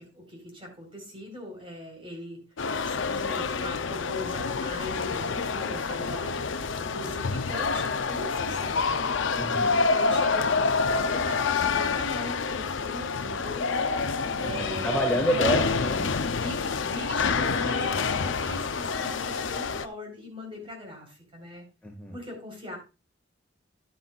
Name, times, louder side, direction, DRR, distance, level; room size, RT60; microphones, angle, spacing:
voice 1, 0.0-2.4 2.8-6.4 6.8-9.2 9.9-13.6 14.4-15.5 16.3-21.7 22.1-22.8, left 1 dB, 25° right, 1 dB, 4.3 m, -40 dB
sound 1, 2.6-19.9, left 4 dB, 70° left, 0.6 m, -27 dB
voice 2, 9.4-9.7 14.4-16.1 21.8-22.2, right 1 dB, 5° left, -3 dB, 1.9 m, -28 dB
11.5 x 9.3 x 2.4 m, 0.30 s
head